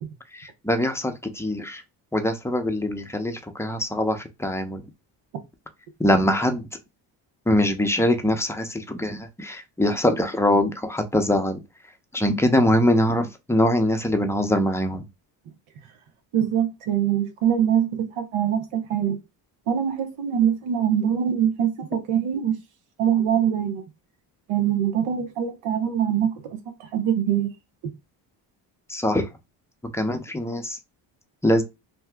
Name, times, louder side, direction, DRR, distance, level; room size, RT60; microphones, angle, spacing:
voice 1, 0.3-1.8 2.1-4.8 6.0-6.7 7.5-11.6 12.1-15.0 28.9-29.3 29.8-30.8 31.4-31.6, left 1 dB, 5° left, 0.6 m, -23 dB
voice 2, 16.3-19.2 19.7-22.6 23.0-23.8 24.5-27.5 27.8-27.9, right 9 dB, 85° right, 0.9 m, -23 dB
2.9 x 2.2 x 3.4 m
cardioid pair, 85°, 48 cm